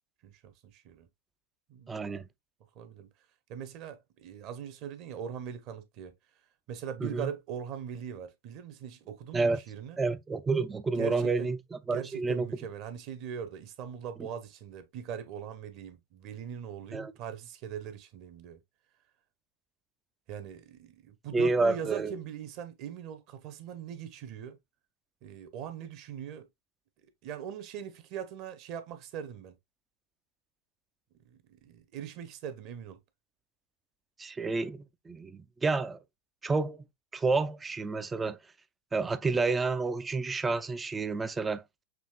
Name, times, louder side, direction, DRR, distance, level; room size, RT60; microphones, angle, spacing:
voice 1, 0.2-1.1 1.7-2.3 2.7-3.1 3.5-6.1 6.7-10.0 11.0-11.5 11.9-18.6 20.3-24.6 25.2-26.5 27.2-29.6 31.2-33.0, right 8 dB, 40° right, 0.9 m, -41 dB
voice 2, 1.9-2.2 7.0-7.3 9.3-9.6 10.0-12.5 16.9-17.1 21.3-22.1 34.2-36.0 36.4-36.8 37.1-38.4 38.9-41.6, right 3 dB, 15° right, 0.4 m, -29 dB
6.1 x 3.0 x 2.3 m
figure-of-eight pair, 90°, 0 cm